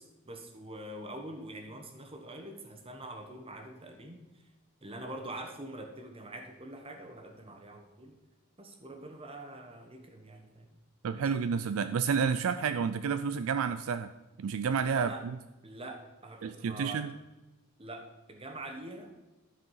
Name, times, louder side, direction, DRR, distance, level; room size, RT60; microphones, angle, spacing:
voice 1, 0.0-4.2 4.8-8.2 8.6-10.8 11.1-11.3 14.9-15.2 15.6-17.1 17.8-19.1, right 1 dB, 25° right, 4 dB, 1.2 m, -44 dB
voice 2, 11.0-14.1 14.4-15.4 16.4-17.1, right 6 dB, 65° right, 11 dB, 0.4 m, -30 dB
12.5 x 4.9 x 5.5 m, 1.1 s
head